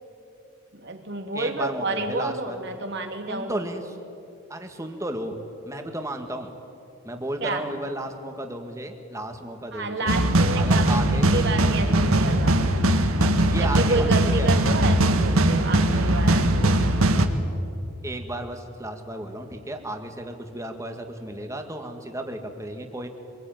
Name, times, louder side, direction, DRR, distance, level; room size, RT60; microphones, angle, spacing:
voice 1, 0.7-3.7 7.4-7.7 9.7-12.6 13.6-17.0, right 3 dB, 55° right, 5 dB, 2.6 m, -30 dB
voice 2, 1.3-2.6 3.3-3.8 4.5-5.4 5.7-6.5 7.0-10.2 10.6-11.3 13.2-14.5 18.0-23.1, right 1 dB, 15° right, 5 dB, 2.0 m, -33 dB
sound 1, 10.1-17.3, right 1 dB, 85° right, 1.9 m, -20 dB
25.5 x 22.0 x 9.3 m, 2.6 s
head